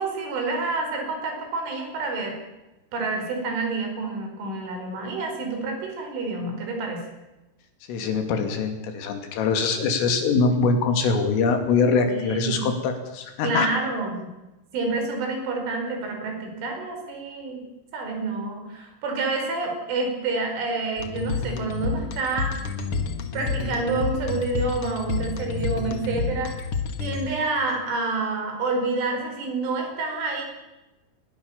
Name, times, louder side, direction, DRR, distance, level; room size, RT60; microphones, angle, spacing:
voice 1, 0.0-2.4 2.9-7.0 12.1-12.7 13.4-14.3 14.7-17.6 17.9-22.6 23.3-26.5 27.0-30.5, right 3 dB, 75° right, 3 dB, 7.4 m, -28 dB
voice 2, 7.9-13.7, left 4 dB, 90° left, 6 dB, 5.3 m, -23 dB
sound 1, 21.0-27.6, left 5 dB, 60° left, 1.5 m, -29 dB
22.5 x 21.0 x 7.3 m, 1.1 s
omnidirectional pair, 5.6 m